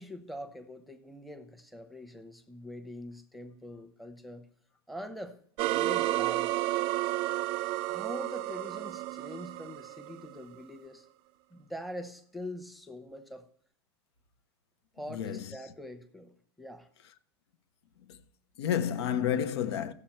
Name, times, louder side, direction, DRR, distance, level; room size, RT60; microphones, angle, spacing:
voice 1, 0.0-4.5 4.9-5.4 5.6-6.5 7.9-11.1 11.5-13.5 14.9-16.9, left 1 dB, ahead, 0.9 m, -43 dB
sound 1, 5.6-10.6, right 17 dB, 45° right, 0.4 m, -31 dB
voice 2, 15.1-15.5 18.0-18.2 18.6-19.9, left 9 dB, 80° left, 0.8 m, -30 dB
15.5 x 6.7 x 4.4 m
supercardioid pair, 125°, 14 cm